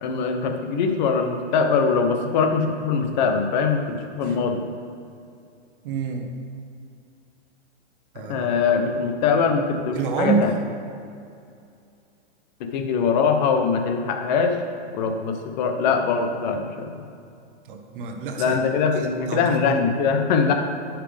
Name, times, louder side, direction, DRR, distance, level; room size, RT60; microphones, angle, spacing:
voice 1, 0.0-4.7 8.2-10.5 12.6-14.6 14.9-16.9 18.4-20.5, left 5 dB, 40° left, 5 dB, 0.8 m, -22 dB
voice 2, 5.8-6.3 8.1-8.5 9.9-10.5 17.7-19.7, right 5 dB, 50° right, 4 dB, 1.0 m, -27 dB
9.9 x 5.9 x 3.5 m, 2.4 s
hypercardioid pair, 150°, 35 cm